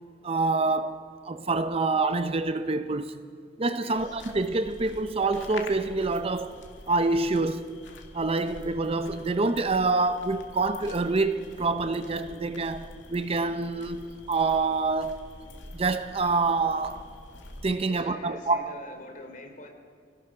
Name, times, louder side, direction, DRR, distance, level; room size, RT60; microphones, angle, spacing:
voice 1, 0.2-1.0 1.2-3.2 3.6-6.5 6.9-7.7 8.1-15.3 15.7-17.0 17.6-18.7, right 3 dB, 30° right, 0.6 m, -26 dB
voice 2, 3.8-4.2 17.9-19.7, left 1 dB, 45° left, 3.1 m, -44 dB
sound 1, 3.9-17.8, left 2 dB, 85° left, 2.2 m, -46 dB
25.0 x 17.5 x 6.0 m
head